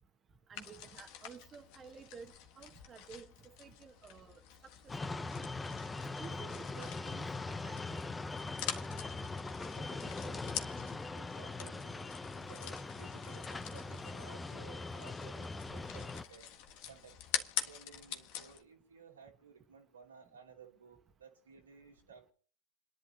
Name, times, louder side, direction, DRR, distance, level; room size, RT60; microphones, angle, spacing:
sound 1, 0.5-18.6, left 10 dB, 60° left, 1.6 m, -46 dB
voice 1, 0.5-4.4 4.8-5.5 5.9-8.0 10.0-10.1, right 6 dB, 30° right, 1.5 m, -53 dB
sound 2, 4.9-16.2, left 3 dB, 15° left, 0.8 m, -41 dB
voice 2, 9.7-16.5 16.9-17.3 17.6-22.3, right 6 dB, 85° right, 2.7 m, -57 dB
29.0 x 11.0 x 2.9 m
hypercardioid pair, 80°, 0 cm